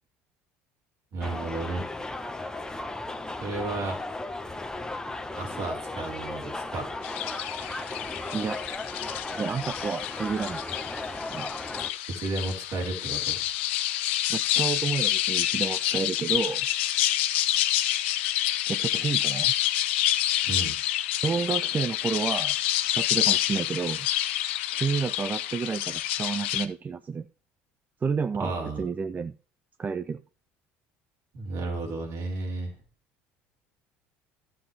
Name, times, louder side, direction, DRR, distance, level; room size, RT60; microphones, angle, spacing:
voice 1, 1.1-1.9 3.4-4.0 5.3-7.0 12.1-13.4 20.4-20.8 28.4-28.9 31.3-32.7, right 2 dB, 60° right, 4.3 m, -33 dB
sound 1, 1.2-11.9, left 2 dB, 10° left, 1.2 m, -36 dB
sound 2, 7.0-26.7, left 13 dB, 85° left, 0.8 m, -28 dB
voice 2, 9.3-10.6 11.3-11.5 14.3-16.7 18.7-19.5 21.2-22.6 22.9-24.1 24.7-27.3 28.0-29.3 29.8-30.2, right 5 dB, 30° right, 0.6 m, -30 dB
12.0 x 7.7 x 3.4 m
hypercardioid pair, 80°, 6 cm